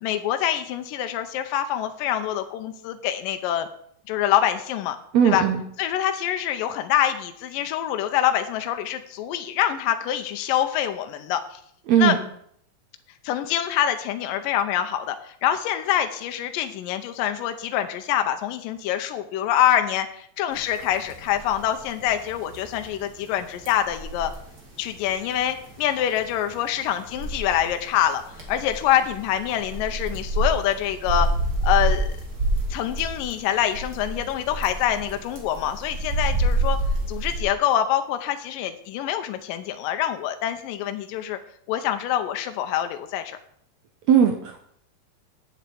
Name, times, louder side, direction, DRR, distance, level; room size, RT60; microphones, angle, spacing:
voice 1, 0.0-3.7 4.1-5.0 5.2-5.4 5.8-11.6 12.0-12.1 13.2-24.3 24.8-28.2 28.5-31.3 31.6-32.1 32.7-36.8 37.1-41.4 41.7-43.4, left 11 dB, 80° left, 7 dB, 2.4 m, -25 dB
voice 2, 5.1-5.6 11.9-12.2 44.1-44.6, right 8 dB, 70° right, 5 dB, 1.7 m, -18 dB
sound 1, 20.5-37.4, right 1 dB, 30° right, 2.8 m, -28 dB
8.1 x 7.4 x 8.5 m, 0.66 s
omnidirectional pair, 4.1 m